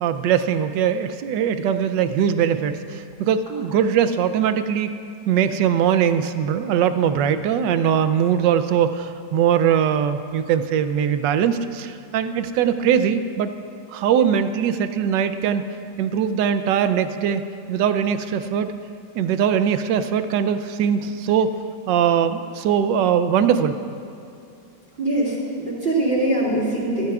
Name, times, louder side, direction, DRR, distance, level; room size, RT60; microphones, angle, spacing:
voice 1, 0.0-5.0 5.3-13.5 13.9-15.6 16.0-17.4 17.7-18.7 19.1-21.5 21.9-23.8, right 8 dB, 85° right, 10 dB, 1.3 m, -21 dB
voice 2, 25.0-27.1, right 1 dB, 30° right, -6 dB, 3.0 m, -22 dB
22.0 x 13.0 x 2.4 m, 2.7 s
omnidirectional pair, 1.9 m